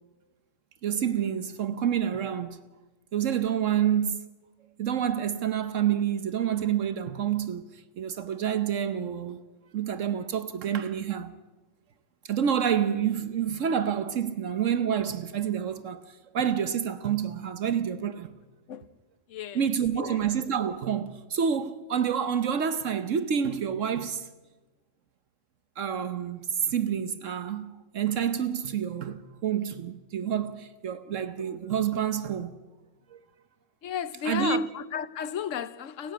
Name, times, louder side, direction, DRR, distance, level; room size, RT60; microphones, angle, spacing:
voice 1, 0.8-2.6 3.1-4.2 4.8-7.6 8.0-9.4 9.7-11.4 12.3-18.3 19.5-24.3 25.8-32.6 33.1-33.2 34.2-34.7, right 8 dB, 75° right, 1.3 m, -28 dB
voice 2, 19.3-19.6 20.0-20.3 33.8-36.1, left 8 dB, 80° left, 1.2 m, -33 dB
30.0 x 11.0 x 8.7 m
omnidirectional pair, 1.3 m